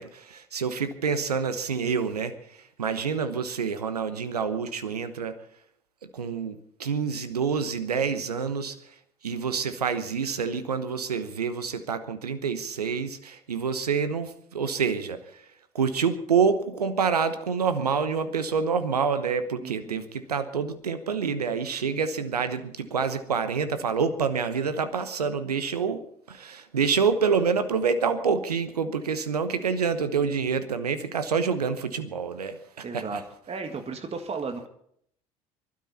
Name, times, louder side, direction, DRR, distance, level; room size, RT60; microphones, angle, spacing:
voice 1, 0.0-2.3 2.6-5.3 6.1-8.8 9.2-15.4 15.7-33.2, right 6 dB, 85° right, 11 dB, 1.0 m, -27 dB
voice 2, 19.6-20.0 32.8-33.2 33.5-34.7, right 4 dB, 30° right, 5 dB, 1.9 m, -34 dB
24.0 x 12.5 x 4.2 m, 0.67 s
figure-of-eight pair, 60°, 19 cm